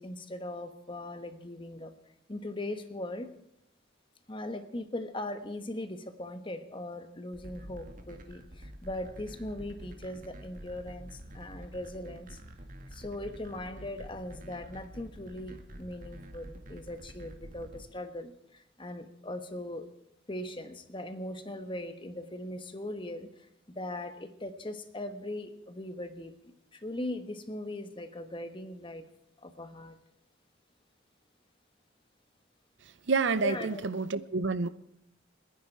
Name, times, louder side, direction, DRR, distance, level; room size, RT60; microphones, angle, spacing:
voice 1, 0.0-1.9 2.3-3.3 4.3-12.4 12.9-19.9 20.3-26.3 26.7-29.0 29.4-30.0 33.4-33.9, left 1 dB, 25° left, 9 dB, 1.1 m, -40 dB
sound 1, 7.3-17.8, right 1 dB, 40° right, 1.7 m, -47 dB
voice 2, 33.1-34.7, right 4 dB, 65° right, 15 dB, 0.6 m, -28 dB
30.0 x 10.0 x 4.5 m, 0.76 s
head